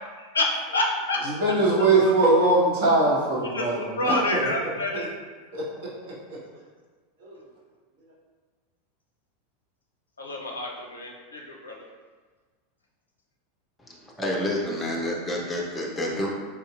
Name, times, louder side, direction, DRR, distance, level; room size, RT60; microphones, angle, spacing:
voice 1, 0.7-1.2 2.0-2.1 3.5-5.1 10.2-11.8, left 2 dB, 75° left, 0 dB, 0.4 m, -28 dB
voice 2, 1.4-4.1 5.5-5.6 7.2-7.3, right 2 dB, 55° right, -6 dB, 1.0 m, -21 dB
voice 3, 13.9-16.3, left 1 dB, 10° left, -4 dB, 0.6 m, -29 dB
3.4 x 2.8 x 2.4 m, 1.4 s
figure-of-eight pair, 85°, 0 cm